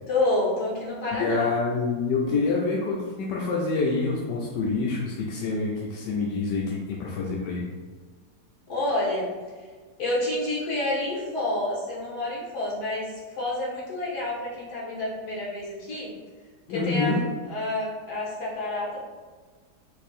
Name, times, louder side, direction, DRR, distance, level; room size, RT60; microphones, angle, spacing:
voice 1, 0.1-1.5 8.7-9.3 10.0-16.1 16.7-17.2 17.5-19.0, left 2 dB, 65° left, -5 dB, 1.8 m, -28 dB
voice 2, 1.2-7.6 16.7-17.2, left 3 dB, 90° left, -3 dB, 1.3 m, -26 dB
4.4 x 2.7 x 4.2 m, 1.5 s
omnidirectional pair, 1.8 m